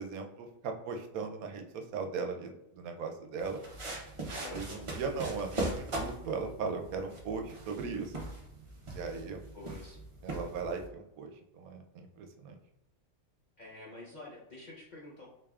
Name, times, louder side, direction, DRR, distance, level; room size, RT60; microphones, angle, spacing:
voice 1, 0.0-3.6 4.5-8.1 8.9-9.4 10.2-12.6, right 5 dB, 80° right, 4 dB, 1.0 m, -38 dB
sound 1, 3.4-10.9, right 1 dB, 40° right, 0.4 m, -40 dB
voice 2, 4.4-4.9 9.5-10.0 13.6-15.3, left 2 dB, 45° left, -4 dB, 0.6 m, -48 dB
3.9 x 3.4 x 2.3 m, 0.88 s
omnidirectional pair, 1.5 m